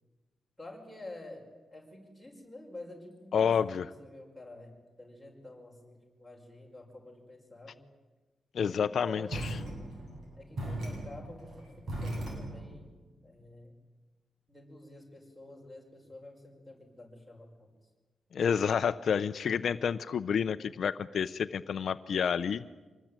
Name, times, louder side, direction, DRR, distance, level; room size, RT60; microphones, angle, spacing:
voice 1, 0.6-7.8 8.6-9.8 10.3-12.9 13.2-13.8 14.5-17.7, left 2 dB, 5° right, 1 dB, 5.7 m, -49 dB
voice 2, 3.3-3.8 8.5-9.4 18.3-22.6, left 7 dB, 60° left, 12 dB, 0.7 m, -29 dB
sound 1, 9.3-12.8, right 1 dB, 60° right, 7.7 m, -38 dB
25.5 x 20.0 x 9.0 m, 1.3 s
wide cardioid pair, 140°, 0 cm